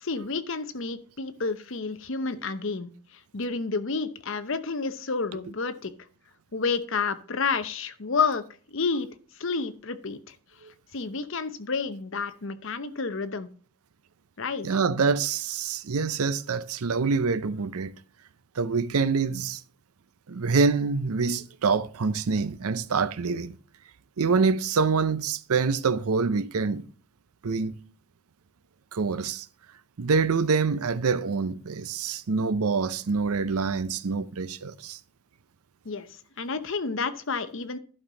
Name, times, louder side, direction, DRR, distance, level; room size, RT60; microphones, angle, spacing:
voice 1, 0.0-2.9 3.3-5.9 6.5-9.1 9.4-10.3 10.9-13.5 14.4-14.7 35.8-36.1 36.4-37.8, left 4 dB, 60° left, 0.8 m, -30 dB
voice 2, 14.6-17.9 18.6-19.6 20.3-23.6 24.2-26.9 27.4-27.7 28.9-29.5 30.0-35.0, right 4 dB, 80° right, 0.6 m, -26 dB
11.5 x 5.5 x 4.0 m
head